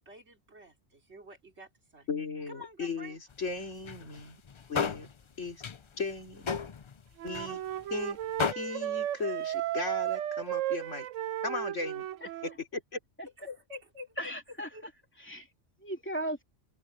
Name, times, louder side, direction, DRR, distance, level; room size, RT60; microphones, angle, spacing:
voice 1, 0.0-2.1 2.5-3.2 13.4-14.3 14.7-14.9, left 2 dB, 60° right, 3.4 m, -48 dB
voice 2, 2.1-4.4 4.7-5.1 5.4-5.6 6.0-6.6 7.2-7.6 7.9-8.2 8.5-11.1 11.4-12.1 12.7-13.0, left 4 dB, 75° left, 3.7 m, -36 dB
sound 1, 3.3-3.4 3.7-4.2 4.5-5.1 5.5-5.8 6.1-7.0 7.3-7.5 7.8-7.9 8.4-8.5, left 6 dB, 40° left, 0.4 m, -32 dB
Wind instrument woodwind instrument, 7.2-12.5, right 13 dB, 85° right, 1.0 m, -34 dB
voice 3, 12.2-12.6 13.2-13.3 14.2-14.9 15.2-15.5 15.8-16.4, right 1 dB, 10° left, 2.9 m, -37 dB
omnidirectional pair, 1.3 m